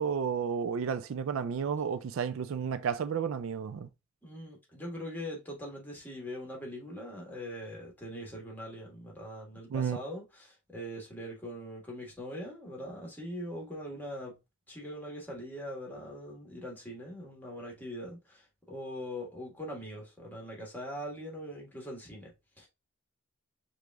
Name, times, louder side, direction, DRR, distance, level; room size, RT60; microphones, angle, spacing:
voice 1, 0.0-3.9 9.7-10.0, right 7 dB, 65° right, 0.3 m, -32 dB
voice 2, 4.2-14.4 14.7-22.7, equal, 10° left, 1.3 m, -42 dB
4.9 x 2.4 x 3.4 m
head